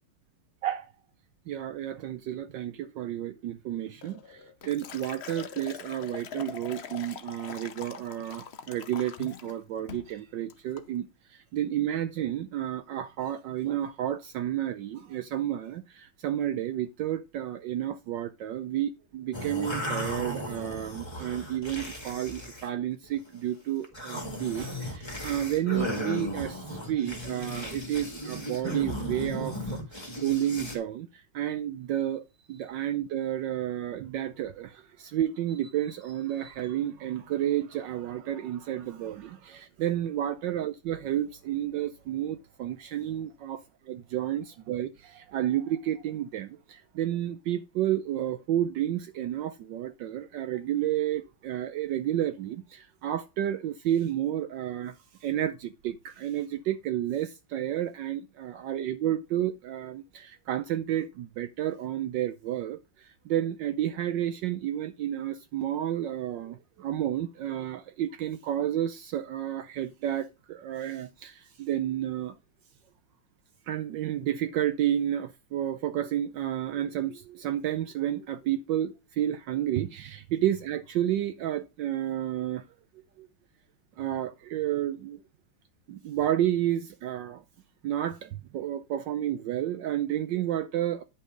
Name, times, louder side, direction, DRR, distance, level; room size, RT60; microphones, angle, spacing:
voice 1, 1.5-4.4 4.6-11.1 11.5-29.8 30.2-31.1 31.3-32.2 32.5-43.6 43.9-54.9 55.2-62.8 63.3-72.3 73.7-82.6 83.2-83.3 84.0-85.2 85.9-87.4 87.8-91.0, right 11 dB, 75° right, 1.2 m, -31 dB
Liquid, 4.0-9.6 9.9-10.1 10.5-10.9, left 7 dB, 60° left, 0.6 m, -43 dB
sound 1, 19.3-22.7 23.0-23.4 23.8-30.8, equal, 15° left, 1.9 m, -36 dB
10.0 x 5.7 x 3.8 m
omnidirectional pair, 2.2 m